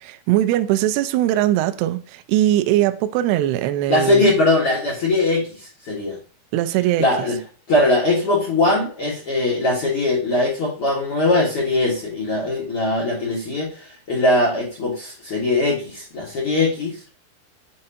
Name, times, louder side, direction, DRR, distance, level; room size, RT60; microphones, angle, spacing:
voice 1, 0.0-4.3 6.5-7.1, right 13 dB, 80° right, 2.3 m, -20 dB
voice 2, 3.9-6.2 7.0-7.4 7.7-17.0, left 2 dB, 55° left, 1.6 m, -20 dB
7.6 x 4.4 x 2.8 m
omnidirectional pair, 5.0 m